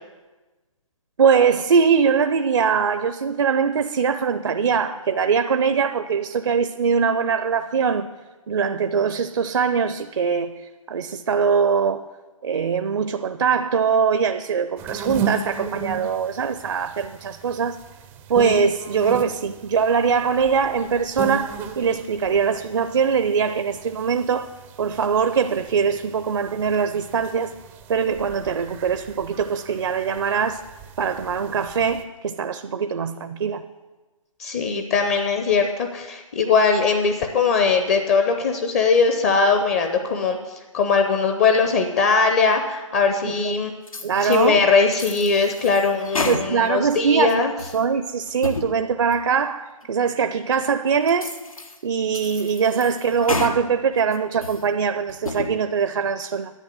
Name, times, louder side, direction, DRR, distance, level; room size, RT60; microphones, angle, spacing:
voice 1, 1.2-8.1 8.5-10.5 10.9-12.1 12.4-17.8 18.3-24.5 24.8-27.5 27.9-30.6 31.0-33.6 43.2-43.5 44.0-44.6 46.3-47.5 47.7-51.4 51.8-56.5, right 6 dB, 55° right, 0.6 m, -22 dB
sound 1, 14.8-32.0, right 5 dB, 10° right, 0.5 m, -36 dB
voice 2, 34.4-40.4 40.7-43.7 44.2-47.5, left 4 dB, 25° left, 0.7 m, -20 dB
sound 2, 43.9-44.5 44.9-46.8 47.2-47.8 48.3-48.7 49.1-49.2 49.8-49.9 50.5-50.6 51.1-51.8 52.1-53.6 54.0-54.6 55.1-55.5, left 3 dB, 85° left, 1.4 m, -31 dB
11.0 x 8.2 x 7.6 m
figure-of-eight pair, 145°, 17 cm